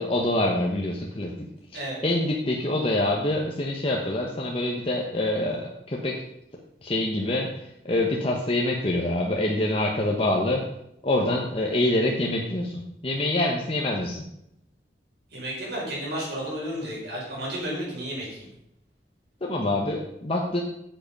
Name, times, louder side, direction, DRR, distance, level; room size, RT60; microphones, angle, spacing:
voice 1, 0.0-1.5 2.0-6.2 6.8-7.5 7.8-10.7 11.0-14.2 19.4-20.6, left 1 dB, 30° left, -1 dB, 1.1 m, -25 dB
voice 2, 15.3-18.5, equal, 65° right, -4 dB, 5.0 m, -32 dB
9.5 x 7.8 x 5.4 m, 0.80 s
head